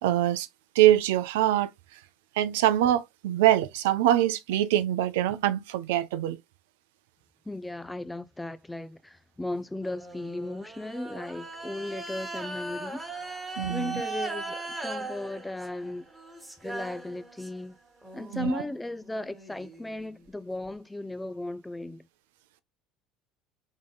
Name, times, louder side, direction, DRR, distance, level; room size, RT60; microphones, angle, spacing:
voice 1, 0.0-0.5 0.8-1.7 2.4-6.4 13.6-14.0 18.3-18.6, right 13 dB, 90° right, 0.4 m, -24 dB
voice 2, 7.5-13.1 13.7-16.1 16.6-17.8 18.1-22.1, left 1 dB, 10° left, 0.4 m, -36 dB
sound 1, 9.8-17.7 18.0-20.7, right 2 dB, 5° right, 1.4 m, -39 dB
3.7 x 3.7 x 2.2 m
supercardioid pair, 100°, 0 cm